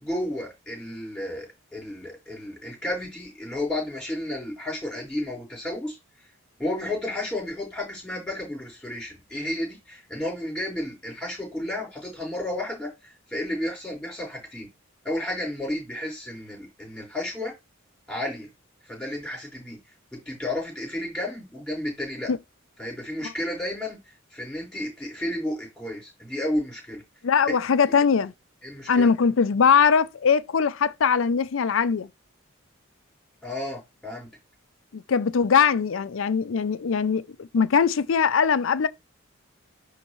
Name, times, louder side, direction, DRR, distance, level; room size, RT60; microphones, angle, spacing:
voice 1, 0.0-6.0 6.6-14.7 15.0-17.5 18.1-18.5 18.8-19.8 20.1-22.3 22.8-27.0 28.6-29.1 33.4-34.3, left 1 dB, 5° left, 4.9 m, -32 dB
voice 2, 27.2-28.3 28.9-32.1 34.9-38.9, left 6 dB, 65° left, 0.5 m, -21 dB
10.5 x 3.6 x 3.1 m
head